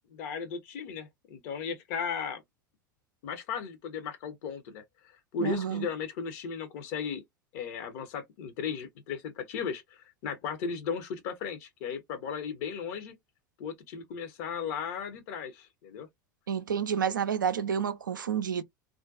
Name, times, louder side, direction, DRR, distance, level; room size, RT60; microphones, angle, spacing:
voice 1, 0.1-2.4 3.2-4.8 5.3-7.2 7.5-13.1 13.6-16.1, left 6 dB, 55° left, 0.7 m, -36 dB
voice 2, 5.4-5.9 16.5-18.6, right 8 dB, 75° right, 0.4 m, -29 dB
2.5 x 2.2 x 2.3 m
figure-of-eight pair, 75°, 11 cm